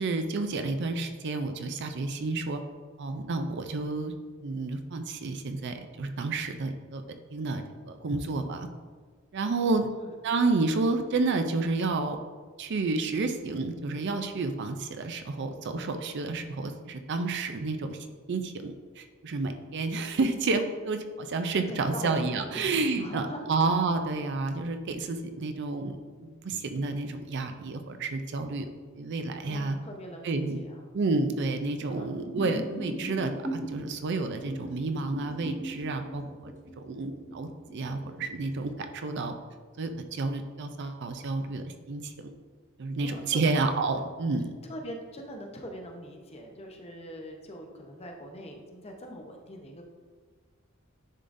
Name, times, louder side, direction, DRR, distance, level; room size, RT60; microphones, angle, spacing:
voice 1, 0.0-2.6 3.0-4.1 4.4-7.0 7.3-8.7 9.3-9.9 10.2-12.2 12.6-18.0 18.3-26.0 26.2-28.7 29.0-29.8 30.2-30.6 30.9-39.3 39.8-42.3 42.8-44.5, right 3 dB, 55° right, 7 dB, 0.5 m, -30 dB
voice 2, 21.7-23.7 29.4-30.8 31.8-32.1 43.0-43.6 44.6-49.8, equal, 30° left, 2 dB, 0.7 m, -42 dB
sound 1, 32.2-33.9 34.4-38.6, right 1 dB, 35° right, 1.1 m, -38 dB
10.0 x 3.8 x 2.6 m, 1.5 s
head